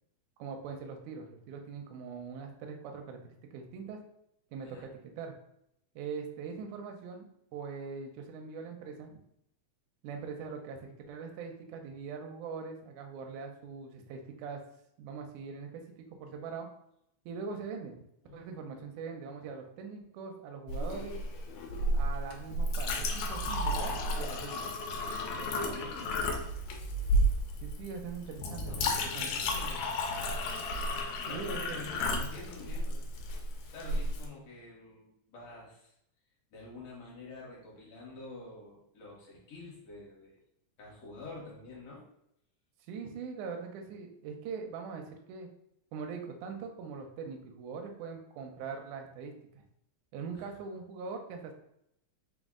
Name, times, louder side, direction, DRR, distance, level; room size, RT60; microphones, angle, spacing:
voice 1, 0.4-4.0 4.5-5.3 6.0-9.2 10.0-14.6 15.0-16.7 17.3-18.1 18.3-21.2 21.9-24.7 27.6-29.3 31.3-31.9 42.9-45.5 45.9-49.6 50.1-51.5, right 5 dB, 85° right, 3 dB, 1.9 m, -42 dB
voice 2, 18.2-18.9 25.2-26.3 28.3-29.9 31.2-33.0 33.7-35.9 36.5-40.4 40.8-42.1 50.3-50.5, left 2 dB, 65° left, -4 dB, 2.0 m, -47 dB
Chink clink, 20.7-34.3, equal, 85° left, 1.9 m, -33 dB
4.9 x 2.1 x 3.5 m, 0.76 s
omnidirectional pair, 3.4 m